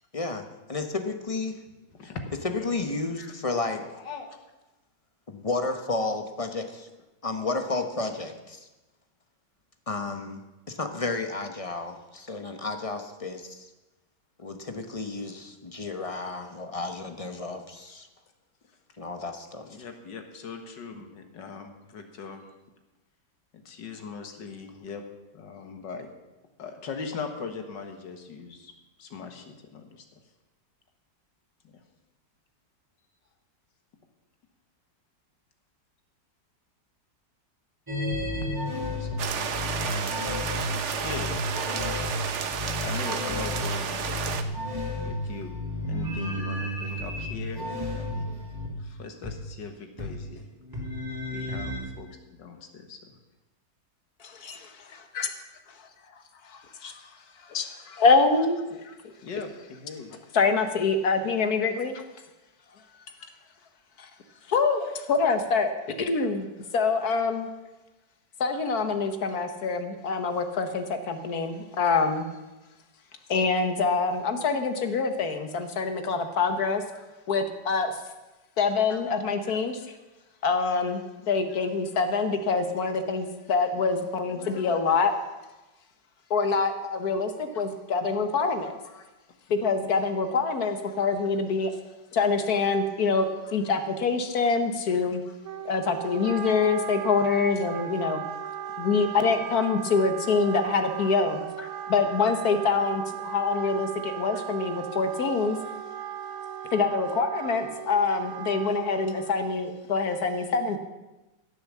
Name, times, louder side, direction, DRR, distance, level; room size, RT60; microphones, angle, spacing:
voice 1, 0.1-0.4 0.7-1.5 2.4-3.9 5.3-6.9 7.2-8.7 9.9-10.4 10.7-13.7 14.4-18.1 19.0-19.7, left 3 dB, 25° left, 6 dB, 0.8 m, -32 dB
voice 2, 3.8-4.4 19.6-22.4 23.5-25.0 25.3-26.1 26.6-28.7 29.0-30.0 38.8-40.2 40.7-41.3 42.2-44.0 45.0-45.5 45.8-47.6 47.9-48.3 48.8-50.5 51.3-52.1 52.4-53.2 57.9-58.0 58.8-58.9 59.2-60.2 63.2-63.3 68.5-68.6 76.9-77.1 78.9-79.0 84.3-84.8 88.9-89.0 93.5-93.6 96.3-96.4 104.3-104.4, left 5 dB, 80° left, 6 dB, 2.1 m, -40 dB
sound 1, 37.9-48.7 49.2-49.3 50.0-50.1 50.4-51.8, left 1 dB, 10° right, 3.4 m, -32 dB
sound 2, 39.2-44.4, right 7 dB, 50° right, 1.0 m, -31 dB
voice 3, 54.2-55.3 56.5-57.0 57.5-58.9 60.3-61.9 64.0-64.1 64.5-65.7 66.0-67.5 68.4-72.3 73.3-76.8 77.3-77.9 78.6-79.8 80.4-85.1 86.3-88.7 89.5-91.7 92.1-95.2 95.6-98.2 98.8-105.6 106.7-110.8, left 4 dB, 60° left, 8 dB, 1.5 m, -25 dB
Wind instrument woodwind instrument, 95.4-109.5, right 8 dB, 75° right, 0.6 m, -37 dB
16.0 x 7.1 x 7.4 m, 1.1 s
omnidirectional pair, 1.9 m